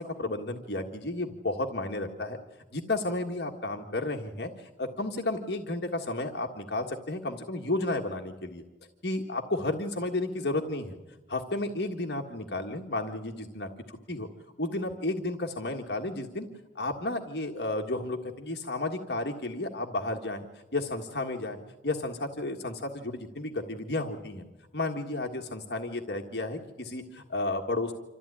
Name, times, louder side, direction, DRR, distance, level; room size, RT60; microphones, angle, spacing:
voice 1, 0.0-2.4 2.7-8.6 9.0-11.0 11.3-14.3 14.6-16.5 16.7-21.6 21.8-24.4 24.7-27.9, left 2 dB, 65° left, 2 dB, 1.7 m, -32 dB
26.5 x 14.5 x 9.9 m, 1.2 s
head